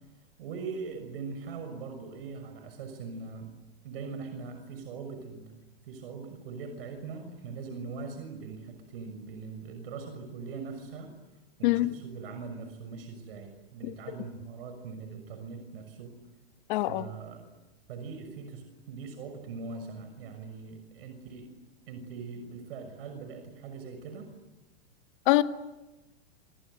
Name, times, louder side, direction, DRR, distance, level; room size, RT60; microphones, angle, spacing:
voice 1, 0.4-3.5 3.8-5.5 5.8-11.1 11.6-16.1 16.9-17.5 17.9-21.5 21.9-24.3, right 4 dB, 65° right, 6 dB, 6.4 m, -41 dB
voice 2, 11.6-11.9 16.7-17.1 25.2-25.4, left 19 dB, 50° left, 10 dB, 1.6 m, -23 dB
27.5 x 27.0 x 8.0 m, 1.1 s
supercardioid pair, 150°, 31 cm